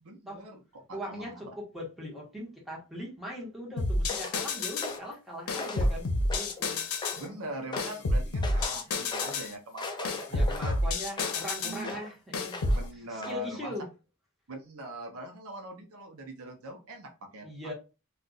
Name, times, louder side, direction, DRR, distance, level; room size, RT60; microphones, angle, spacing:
voice 1, 0.0-1.5 7.1-10.8 11.6-12.0 12.7-13.7 14.5-17.5, right 1 dB, 75° right, 4 dB, 0.7 m, -42 dB
voice 2, 0.9-6.8 10.3-12.6 13.1-13.9 17.4-17.7, equal, ahead, -3 dB, 1.0 m, -40 dB
sound 1, 3.8-5.0 5.5-7.2 7.8-9.5 10.0-11.8 12.3-12.8, left 2 dB, 85° left, 0.7 m, -29 dB
sound 2, 4.1-4.4 4.8-5.1 5.5-5.9 6.3-6.6 7.0-7.3 7.7-8.0 8.4-8.8 9.1-9.4 9.8-11.5 11.8-12.1 12.5-12.9 13.2-13.4, left 3 dB, 20° left, 0.4 m, -39 dB
2.4 x 2.4 x 3.9 m, 0.31 s
head